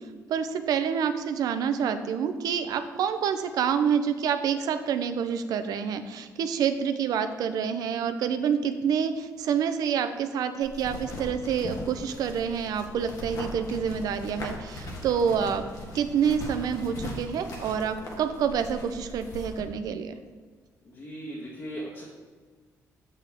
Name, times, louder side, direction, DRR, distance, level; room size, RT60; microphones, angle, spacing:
voice 1, 0.3-15.6 15.9-20.1, right 7 dB, 75° right, 9 dB, 0.5 m, -27 dB
sound 1, 10.6-19.6, left 1 dB, 65° left, 1.4 m, -39 dB
voice 2, 20.8-22.0, right 1 dB, 40° left, -5 dB, 1.4 m, -38 dB
6.6 x 6.6 x 3.5 m, 1.4 s
cardioid pair, 80°, 6 cm